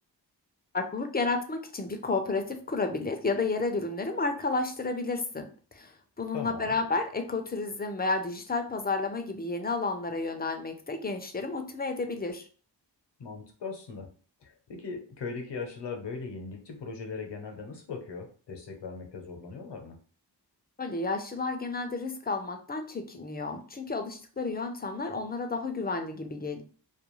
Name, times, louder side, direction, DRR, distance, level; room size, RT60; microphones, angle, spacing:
voice 1, 0.7-5.5 5.7-12.5 20.8-26.6, left 3 dB, 25° left, 6 dB, 0.4 m, -31 dB
voice 2, 6.3-6.8 13.2-14.1 14.4-20.0, left 4 dB, 75° left, 3 dB, 0.8 m, -39 dB
2.3 x 2.3 x 3.0 m, 0.41 s
wide cardioid pair, 60°, 42 cm